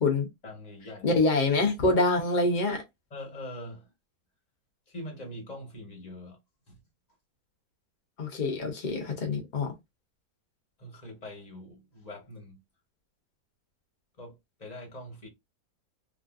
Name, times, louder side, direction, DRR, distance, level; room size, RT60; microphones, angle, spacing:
voice 1, 0.4-1.2 2.3-2.4 3.1-3.9 4.9-6.4 6.7-6.8 10.8-12.6 14.2-15.3, left 1 dB, 30° left, 1.0 m, -43 dB
voice 2, 1.0-2.8 8.2-9.7, left 3 dB, 75° left, 0.4 m, -25 dB
3.0 x 2.4 x 2.4 m
omnidirectional pair, 1.7 m